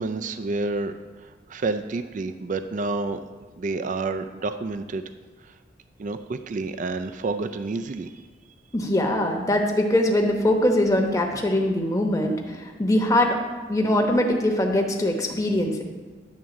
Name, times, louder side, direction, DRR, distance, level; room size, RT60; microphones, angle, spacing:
voice 1, 0.0-3.2 3.6-5.0 5.4-5.5 6.0-8.1, right 3 dB, 45° right, 9 dB, 0.4 m, -29 dB
voice 2, 8.7-13.3 13.7-15.8, left 1 dB, 20° left, 2 dB, 1.0 m, -22 dB
10.5 x 3.7 x 7.0 m, 1.4 s
head